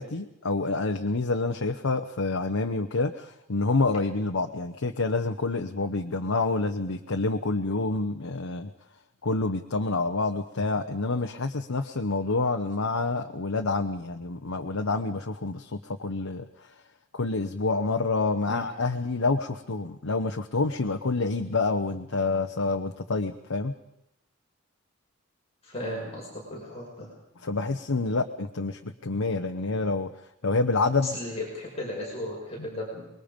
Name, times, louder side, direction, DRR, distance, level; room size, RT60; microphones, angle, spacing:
voice 1, 0.0-8.7 9.2-16.4 17.1-23.7 27.4-30.1 30.4-31.2, left 3 dB, 85° left, 5 dB, 0.9 m, -27 dB
voice 2, 25.6-27.1 31.0-33.1, left 1 dB, 30° left, -4 dB, 6.2 m, -35 dB
25.0 x 22.0 x 5.2 m, 0.84 s
head